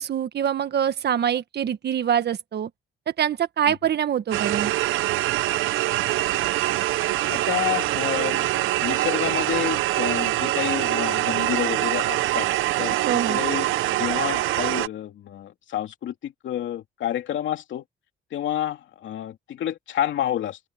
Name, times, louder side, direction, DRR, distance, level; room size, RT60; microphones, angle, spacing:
voice 1, 0.0-2.7 3.2-4.7 13.0-13.4, right 9 dB, 55° right, 1.5 m, -24 dB
sound 1, 4.3-14.9, right 16 dB, 85° right, 0.7 m, -24 dB
voice 2, 7.3-12.5 12.8-13.0 13.3-17.8 18.3-20.6, left 11 dB, 70° left, 2.8 m, -29 dB
open air
cardioid pair, 90°, 20 cm